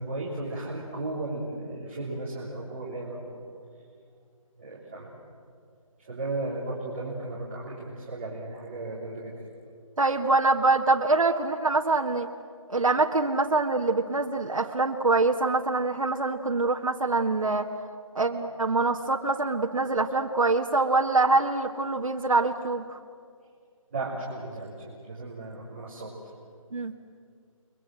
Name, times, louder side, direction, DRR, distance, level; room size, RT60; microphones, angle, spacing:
voice 1, 0.0-3.4 4.6-5.2 6.0-9.3 23.9-24.7 25.0-26.1, right 2 dB, 20° right, -8 dB, 3.6 m, -35 dB
voice 2, 10.0-12.3 12.7-17.7 18.1-23.0 26.7-26.9, right 3 dB, 70° right, 2 dB, 1.8 m, -24 dB
30.0 x 23.0 x 7.7 m, 2.2 s
figure-of-eight pair, 180°, 18 cm